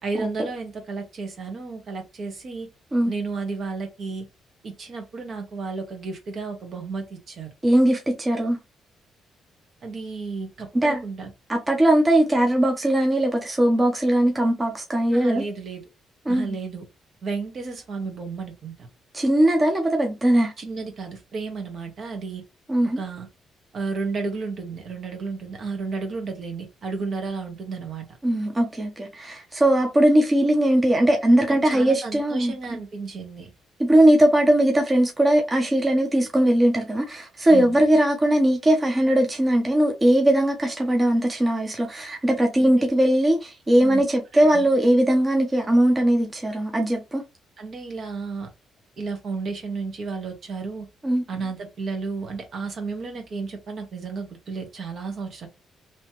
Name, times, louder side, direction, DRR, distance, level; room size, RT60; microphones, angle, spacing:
voice 1, 0.0-2.7 3.1-4.3 4.6-7.5 9.8-11.3 15.1-15.8 16.3-16.8 17.2-18.7 20.6-22.4 23.0-23.3 23.7-28.1 31.5-33.5 37.5-37.8 42.6-42.9 43.8-44.0 44.5-44.6 47.6-48.5 49.0-50.9 51.3-55.5, right 4 dB, 55° right, 1.4 m, -32 dB
voice 2, 7.6-8.6 10.7-11.0 11.5-15.4 16.3-16.5 19.1-20.5 22.7-23.0 28.2-32.5 33.8-47.2 51.0-51.2, right 1 dB, 25° right, 0.9 m, -20 dB
3.1 x 3.0 x 3.0 m
cardioid pair, 90°, 0 cm